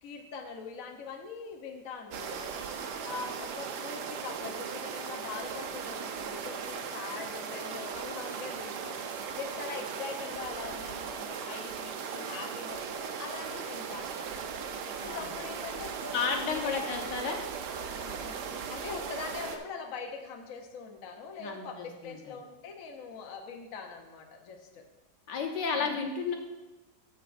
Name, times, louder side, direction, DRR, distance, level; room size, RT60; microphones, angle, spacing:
voice 1, 0.0-2.6 3.0-9.0 9.4-14.4 15.0-16.8 17.9-24.8 25.8-26.0, left 5 dB, 60° left, 3 dB, 1.1 m, -42 dB
sound 1, 2.1-19.6, right 6 dB, 75° right, 1.3 m, -38 dB
voice 2, 16.1-17.4 21.4-22.4 25.3-26.4, left 5 dB, 75° left, 2 dB, 1.6 m, -32 dB
15.0 x 6.1 x 2.5 m, 1.1 s
omnidirectional pair, 1.9 m